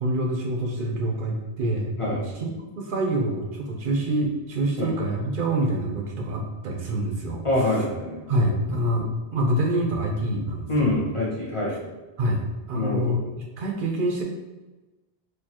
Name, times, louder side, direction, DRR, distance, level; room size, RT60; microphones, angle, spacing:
voice 1, 0.0-7.4 8.3-9.1 9.3-11.1 12.2-13.2 13.6-14.2, right 1 dB, 65° right, 1 dB, 0.7 m, -26 dB
voice 2, 7.4-8.2 8.9-9.1 10.7-11.8 12.7-13.2, left 1 dB, 35° left, -5 dB, 0.7 m, -25 dB
4.3 x 2.6 x 2.8 m, 1.2 s
omnidirectional pair, 1.0 m